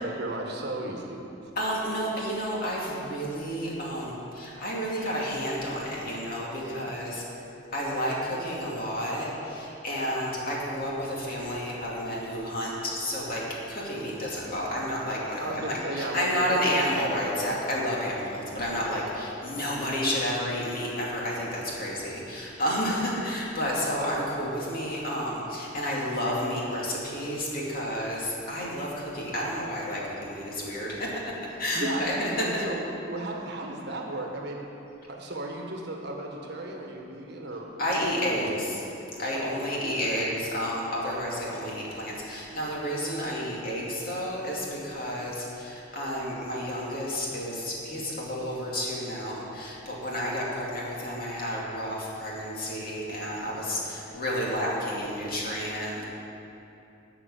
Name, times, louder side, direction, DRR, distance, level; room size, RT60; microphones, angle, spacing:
voice 1, 0.0-1.5 6.6-6.9 15.4-16.8 18.9-19.0 31.7-34.6 35.1-38.5 39.4-39.6 53.5-53.8, right 2 dB, 55° right, 0 dB, 1.5 m, -35 dB
voice 2, 1.6-7.2 7.7-31.1 31.4-32.6 37.8-38.8 39.2-56.0, equal, 50° left, -5 dB, 2.6 m, -31 dB
12.0 x 5.7 x 8.6 m, 2.8 s
head